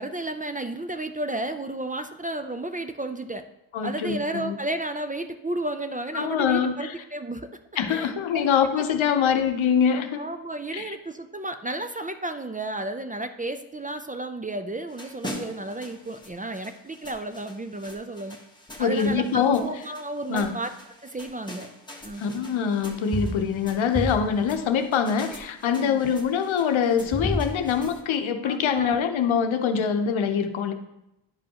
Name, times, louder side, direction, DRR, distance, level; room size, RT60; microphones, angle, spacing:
voice 1, 0.0-3.4 3.8-7.5 7.9-8.5 9.0-9.2 10.2-18.4 18.8-20.7 21.0-21.7 22.0-22.2 25.8-26.1 28.4-29.0, right 2 dB, 20° right, 8 dB, 0.3 m, -33 dB
voice 2, 3.7-4.6 6.1-6.9 7.8-10.2 10.7-10.9 18.8-19.6 20.3-20.5 22.2-30.7, left 7 dB, 90° left, 7 dB, 0.7 m, -24 dB
sound 1, 14.9-28.0, left 1 dB, 10° left, 1.0 m, -37 dB
10.0 x 5.2 x 2.8 m, 0.87 s
cardioid pair, 75°, 46 cm